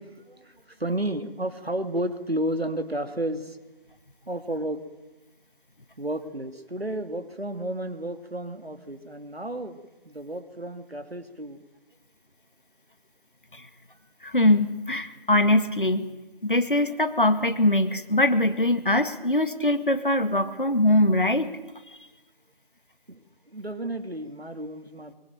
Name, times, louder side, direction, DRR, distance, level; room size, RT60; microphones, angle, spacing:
voice 1, 0.0-3.6 4.3-4.8 6.0-9.8 10.0-11.6 23.1-25.1, right 1 dB, 85° right, 9 dB, 2.7 m, -32 dB
voice 2, 14.2-16.1 16.4-21.5, left 1 dB, 60° left, 10 dB, 1.9 m, -22 dB
23.5 x 22.5 x 9.1 m, 1.1 s
figure-of-eight pair, 175°, 30 cm